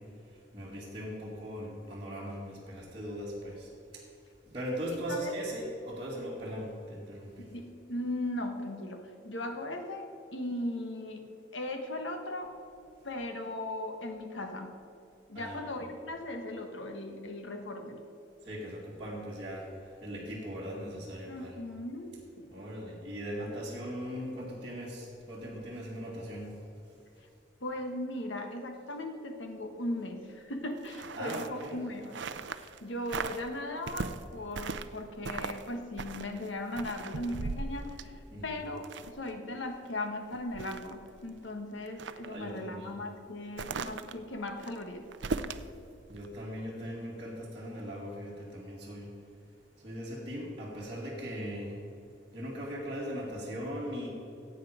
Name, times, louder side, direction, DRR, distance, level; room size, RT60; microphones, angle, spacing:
voice 1, 0.3-4.0 4.5-7.5 15.3-15.9 18.4-21.6 22.5-26.5 31.1-31.8 38.3-38.6 42.2-42.9 46.1-49.1 49.7-51.8 52.3-54.1, equal, 30° right, -8 dB, 2.0 m, -39 dB
voice 2, 7.4-11.2 11.5-12.5 13.0-14.7 15.3-18.0 21.3-22.7 27.6-32.2 32.6-38.1 38.4-45.0, left 1 dB, 80° left, 5 dB, 1.4 m, -38 dB
sound 1, 30.8-32.8 33.1-33.5 33.9-35.0 35.2-35.7 36.0-39.3 39.7-39.8 40.2-41.4 41.8-42.3 43.6-45.7 46.1-46.3, right 4 dB, 70° right, 0.5 m, -38 dB
15.5 x 8.7 x 5.1 m, 2.8 s
head